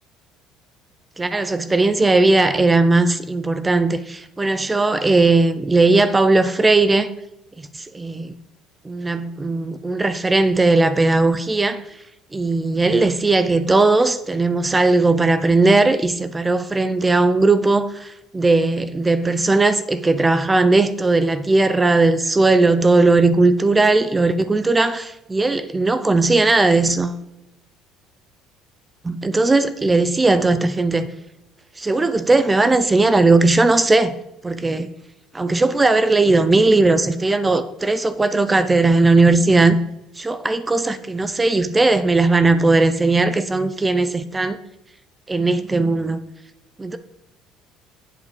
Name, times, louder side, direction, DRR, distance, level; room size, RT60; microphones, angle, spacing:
voice 1, 1.2-7.1 7.7-8.3 8.8-12.0 12.3-27.2 29.0-31.1 31.8-34.1 34.4-34.9 35.3-39.8 40.2-44.6 45.3-46.2 46.8-47.0, right 3 dB, 15° right, 0.5 m, -17 dB
8.2 x 7.1 x 4.9 m
cardioid pair, 110°, 0 cm